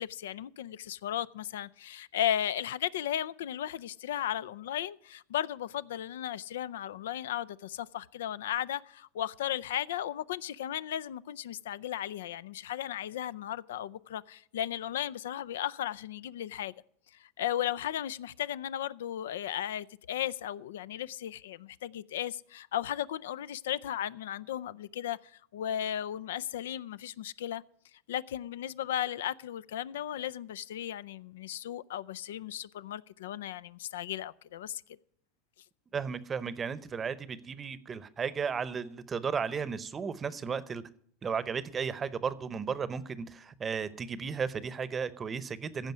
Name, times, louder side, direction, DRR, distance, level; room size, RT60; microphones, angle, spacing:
voice 1, 0.0-16.7 17.2-25.2 25.5-27.6 28.1-34.8, left 11 dB, 90° left, 0.4 m, -35 dB
voice 2, 35.9-40.8 41.2-45.9, right 6 dB, 25° right, 0.7 m, -34 dB
15.0 x 5.1 x 9.4 m
supercardioid pair, 125°, 0 cm